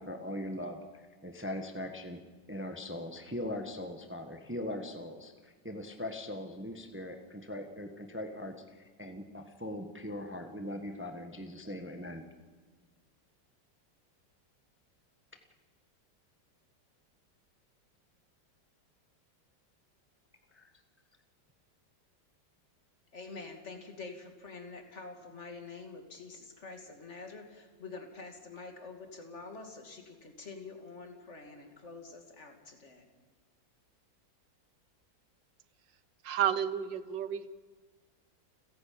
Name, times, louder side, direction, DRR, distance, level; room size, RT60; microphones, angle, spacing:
voice 1, 0.0-2.2 2.5-12.2 20.5-20.7, left 1 dB, 5° right, 6 dB, 1.3 m, -40 dB
voice 2, 23.1-33.1, left 4 dB, 40° left, 4 dB, 2.9 m, -47 dB
voice 3, 36.2-37.6, right 9 dB, 85° right, 14 dB, 1.7 m, -31 dB
30.0 x 11.0 x 8.7 m, 1.5 s
omnidirectional pair, 1.9 m